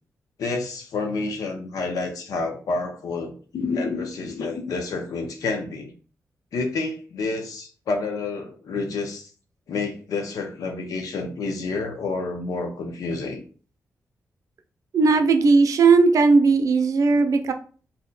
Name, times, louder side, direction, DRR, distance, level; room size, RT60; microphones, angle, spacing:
voice 1, 0.4-5.9 6.5-9.3 9.7-13.4, left 3 dB, 85° left, 5 dB, 0.7 m, -29 dB
voice 2, 14.9-17.5, right 4 dB, 70° right, 7 dB, 0.5 m, -17 dB
2.8 x 2.1 x 3.8 m, 0.40 s
cardioid pair, 95°, 6 cm